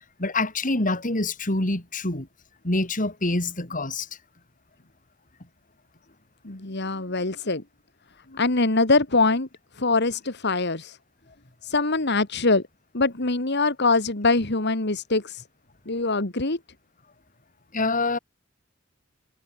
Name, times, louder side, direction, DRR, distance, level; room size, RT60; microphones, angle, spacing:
voice 1, 0.2-2.3 2.6-4.1 17.7-18.2, left 2 dB, 40° left, 4.0 m, -26 dB
voice 2, 6.4-7.6 8.3-9.5 9.8-11.0 11.6-12.6 12.9-15.4 15.9-16.6, left 3 dB, 60° left, 2.4 m, -23 dB
head